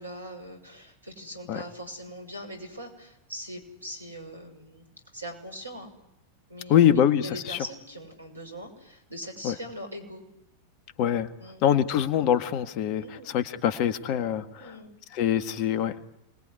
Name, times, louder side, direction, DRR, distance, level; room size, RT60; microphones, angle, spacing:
voice 1, 0.0-4.8 5.1-5.9 6.5-10.2 11.4-11.6 13.0-13.3 14.6-14.9, equal, 80° right, 6 dB, 6.2 m, -41 dB
voice 2, 6.7-7.6 9.4-9.5 11.0-11.3 11.6-14.4 15.1-15.9, left 10 dB, 40° left, 10 dB, 1.7 m, -24 dB
28.0 x 20.5 x 9.7 m, 0.89 s
figure-of-eight pair, 90°, 0 cm